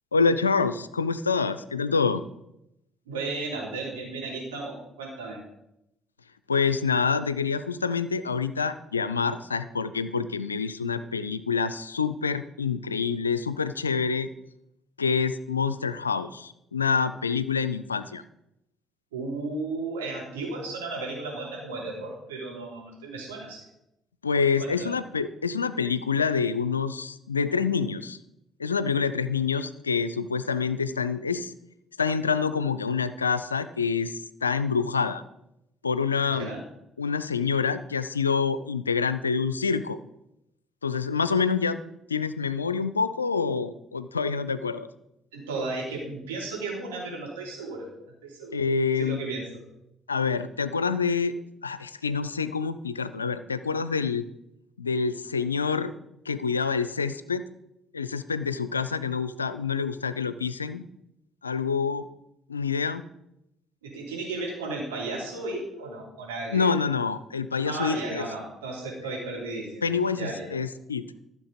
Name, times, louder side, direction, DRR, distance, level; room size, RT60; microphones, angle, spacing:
voice 1, 0.1-2.2 6.5-14.3 15.0-18.2 24.2-28.2 28.6-31.5 32.0-35.2 35.8-36.5 37.0-40.0 40.8-41.8 42.1-44.9 48.5-49.2 50.1-51.3 51.6-54.2 54.8-55.9 56.3-57.4 57.9-60.8 61.4-62.1 62.5-63.0 66.5-68.3 69.8-71.1, left 5 dB, 85° left, 14 dB, 0.4 m, -27 dB
voice 2, 3.0-5.4 19.1-23.6 24.6-24.9 36.3-36.6 45.3-47.9 48.2-48.6 48.9-49.7 63.8-66.7 67.6-69.9 70.1-70.5, right 3 dB, 75° right, -2 dB, 3.1 m, -34 dB
13.5 x 6.4 x 5.2 m, 0.84 s
figure-of-eight pair, 50°, 0 cm